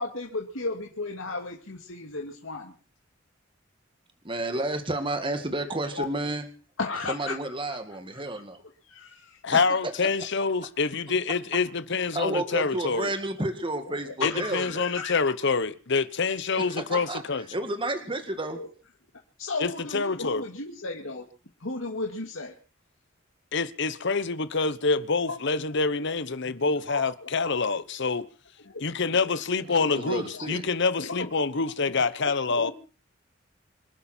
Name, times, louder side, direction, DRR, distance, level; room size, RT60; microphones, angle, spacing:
voice 1, 0.0-2.7 4.4-4.5 5.9-6.1 6.8-7.3 7.7-7.8 8.1-8.2 8.8-9.4 13.4-13.5 13.9-15.2 18.5-18.7 19.4-21.3 21.6-22.5 25.3-25.4 26.3-27.6 28.6-28.8 29.2-29.3 29.8-30.5 31.0-31.3 31.9-32.1 32.5-32.7, left 3 dB, 90° left, 2.4 m, -35 dB
voice 2, 4.2-6.4 7.1-8.6 9.5-9.9 12.1-14.9 16.6-17.2 17.5-18.6 29.7-30.6, right 2 dB, 25° right, 2.1 m, -31 dB
voice 3, 9.4-13.1 14.2-17.5 19.6-20.5 23.5-28.3 28.8-32.7, left 4 dB, 65° left, 1.1 m, -26 dB
26.5 x 11.5 x 4.5 m
head